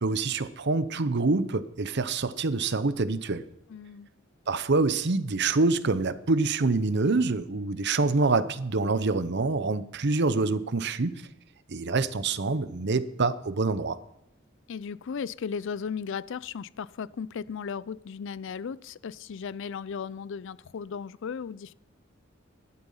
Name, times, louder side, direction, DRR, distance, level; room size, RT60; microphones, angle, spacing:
voice 1, 0.0-3.4 4.5-11.2 11.7-14.0, right 3 dB, 60° right, 0.8 m, -26 dB
voice 2, 3.7-4.1 14.7-21.7, left 6 dB, 65° left, 0.4 m, -36 dB
12.5 x 11.5 x 5.6 m
head